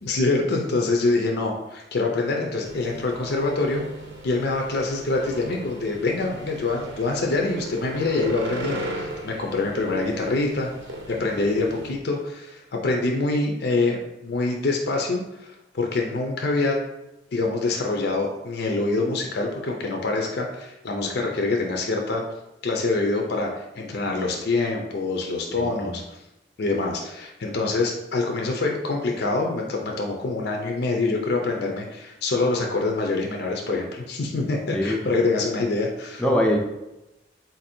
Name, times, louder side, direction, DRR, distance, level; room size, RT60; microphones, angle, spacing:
voice 1, 0.0-3.8 4.2-10.7 11.1-16.8 17.3-22.2 22.6-26.0 26.6-36.2, left 3 dB, 60° left, 1 dB, 0.5 m, -25 dB
sound 1, 2.7-11.9, right 1 dB, 80° right, 0.8 m, -37 dB
voice 2, 25.5-25.9 34.7-35.1 36.2-36.6, equal, 5° left, -1 dB, 0.5 m, -23 dB
4.0 x 2.6 x 4.3 m, 0.93 s
head